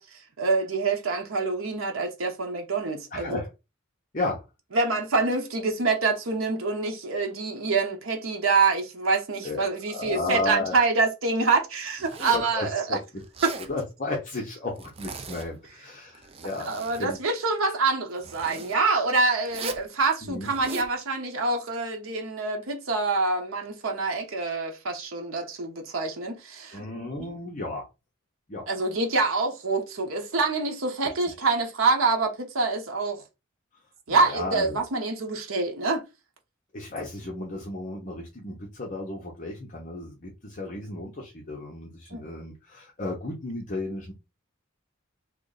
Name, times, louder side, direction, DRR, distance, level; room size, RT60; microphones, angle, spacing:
voice 1, 0.0-3.4 4.7-13.0 13.4-13.5 16.6-27.4 28.7-33.2 34.1-36.0 42.1-42.2, right 3 dB, 85° right, 0.8 m, -26 dB
voice 2, 3.1-3.5 4.1-4.4 9.4-10.8 12.3-13.0 13.7-17.2 20.2-20.5 26.7-27.9 28.5-28.7 34.1-34.8 36.7-44.1, left 2 dB, 40° left, 0.8 m, -33 dB
Zipper (clothing), 12.0-12.5 13.2-13.7 14.8-15.6 16.1-17.1 18.2-18.8 19.5-19.9 20.4-20.9, right 4 dB, 30° right, 0.4 m, -38 dB
3.0 x 2.5 x 3.9 m
head